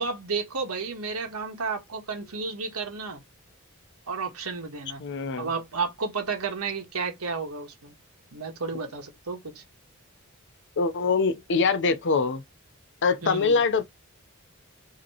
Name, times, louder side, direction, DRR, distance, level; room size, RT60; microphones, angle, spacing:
voice 1, 0.0-3.2 4.1-5.0 5.4-7.9 8.3-9.6 13.2-13.6, right 4 dB, 85° right, 1.3 m, -32 dB
voice 2, 5.0-5.5 10.8-12.4 13.0-13.8, left 4 dB, 55° left, 0.6 m, -24 dB
5.0 x 2.9 x 2.9 m
head